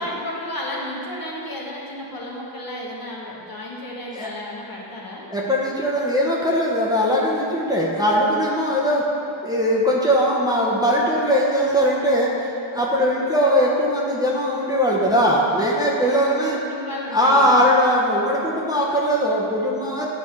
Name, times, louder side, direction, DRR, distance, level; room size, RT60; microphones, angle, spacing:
voice 1, 0.0-5.3 16.0-17.6, left 1 dB, 45° left, -5 dB, 1.5 m, -33 dB
voice 2, 5.3-9.0 9.4-12.3 12.7-16.6 17.1-20.1, equal, 10° right, -5 dB, 0.9 m, -20 dB
8.8 x 4.2 x 3.2 m, 2.7 s
cardioid pair, 50°, 46 cm